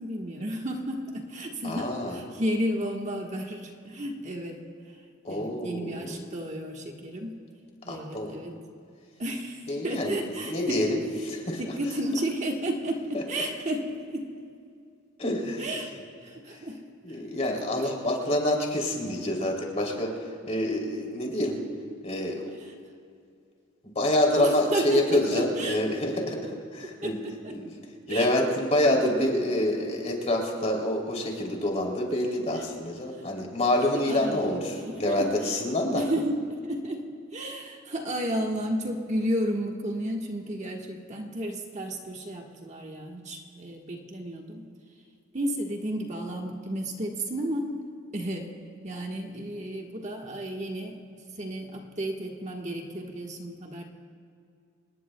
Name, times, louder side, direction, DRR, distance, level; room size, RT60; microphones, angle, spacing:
voice 1, 0.0-5.0 5.3-7.4 7.8-8.6 9.2-10.9 11.6-14.3 15.6-15.9 16.2-16.8 17.1-17.2 17.7-17.9 22.6-22.7 24.3-25.8 26.9-27.6 28.1-28.3 32.5-32.6 33.9-34.6 34.8-35.6 35.9-37.0 37.3-44.7 45.3-47.7 48.1-48.5 48.8-53.8, right 1 dB, 35° right, 1 dB, 1.4 m, -32 dB
voice 2, 1.6-2.1 5.2-6.2 7.9-8.3 9.7-11.0 11.3-11.6 15.2-15.7 17.0-21.6 22.0-22.5 23.8-27.2 27.5-27.7 28.1-36.0, left 1 dB, 35° left, 0 dB, 3.1 m, -27 dB
27.0 x 20.0 x 2.3 m, 2.3 s
head